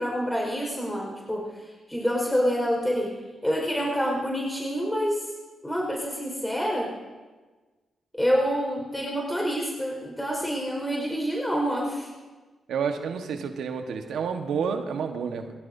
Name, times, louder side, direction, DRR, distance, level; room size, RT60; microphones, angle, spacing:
voice 1, 0.0-1.5 1.9-3.1 3.4-5.3 5.6-6.9 8.2-12.1, equal, 10° left, -1 dB, 4.8 m, -27 dB
voice 2, 12.7-15.5, right 6 dB, 75° right, 5 dB, 1.3 m, -29 dB
23.0 x 16.0 x 2.7 m, 1.3 s
supercardioid pair, 50°, 0 cm